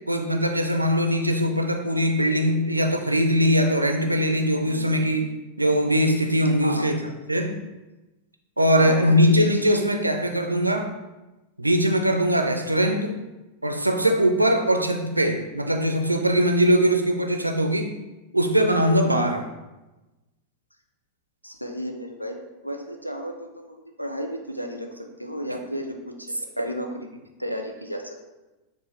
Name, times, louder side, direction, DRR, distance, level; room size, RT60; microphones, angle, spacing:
voice 1, 0.1-5.3 5.6-7.0 7.3-7.5 8.6-10.9 11.6-13.1 13.6-17.9 18.3-19.4, equal, 85° right, 4 dB, 0.4 m, -21 dB
voice 2, 4.6-4.9 6.6-6.9 8.8-9.4 19.0-19.3 21.4-22.4 22.6-26.9 27.4-28.2, equal, 90° left, 3 dB, 0.5 m, -33 dB
6.9 x 2.4 x 3.1 m, 1.1 s
figure-of-eight pair, 90°, 0 cm